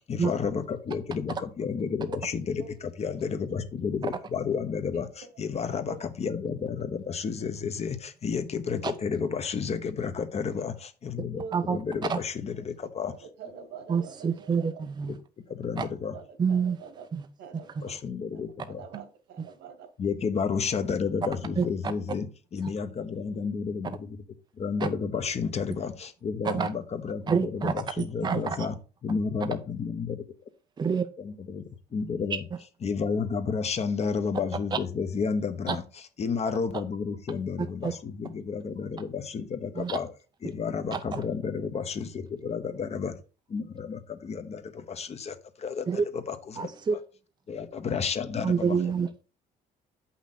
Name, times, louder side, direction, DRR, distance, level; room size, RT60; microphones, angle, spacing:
voice 1, 0.1-11.4 11.7-13.1 15.1-15.2 15.5-16.2 17.8-18.8 20.0-22.3 22.5-24.2 24.6-28.7 29.0-30.2 31.2-31.6 31.9-32.4 32.8-35.8 36.2-40.1 40.4-43.1 43.5-45.9 46.1-46.7 47.5-48.8, left 5 dB, 40° left, 1.1 m, -31 dB
voice 2, 11.2-11.6 13.0-14.8 16.1-17.0 17.4-17.9 18.3-19.9, right 6 dB, 80° right, 2.1 m, -45 dB
voice 3, 13.9-15.1 15.8-15.9 16.4-16.8 17.1-17.3 17.8-17.9 19.4-19.5 21.6-21.9 22.6-22.7 24.8-24.9 26.4-26.7 27.3-27.7 28.2-28.7 30.8-31.1 34.7-34.8 35.7-35.8 37.8-37.9 39.8-40.0 40.9-41.2 45.9-46.1 46.6-47.0 48.4-49.2, right 6 dB, 25° right, 0.6 m, -27 dB
7.5 x 5.7 x 4.2 m
cardioid pair, 110°, 17 cm